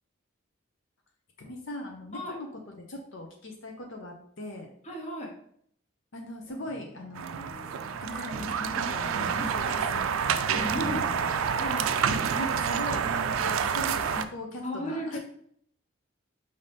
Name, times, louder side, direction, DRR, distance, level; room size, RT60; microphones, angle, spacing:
voice 1, 1.4-2.5 2.8-4.7 6.1-7.5 8.0-10.6 10.9-11.3 12.0-15.2, left 1 dB, 70° left, 2 dB, 0.6 m, -40 dB
voice 2, 4.8-5.3 10.5-11.9 14.6-15.2, equal, 35° left, 0 dB, 0.9 m, -35 dB
sound 1, 6.5-13.6, right 2 dB, 10° right, 0.8 m, -44 dB
sound 2, 7.2-14.2, right 7 dB, 85° right, 0.4 m, -28 dB
5.3 x 2.8 x 3.3 m, 0.65 s
head